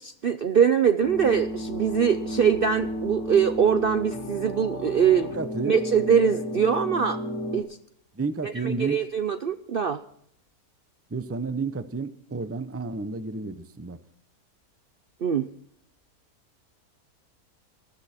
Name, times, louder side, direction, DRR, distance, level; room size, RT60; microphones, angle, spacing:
voice 1, 0.0-5.3 5.7-7.2 7.5-7.7 8.4-10.0 15.2-15.5, right 7 dB, 50° right, 10 dB, 0.7 m, -23 dB
sound 1, 1.0-7.6, equal, 50° left, 2.4 m, -33 dB
voice 2, 5.4-5.7 8.2-9.0 11.1-14.0, right 4 dB, 15° right, 12 dB, 0.6 m, -31 dB
20.0 x 13.0 x 4.4 m, 0.71 s
omnidirectional pair, 1.6 m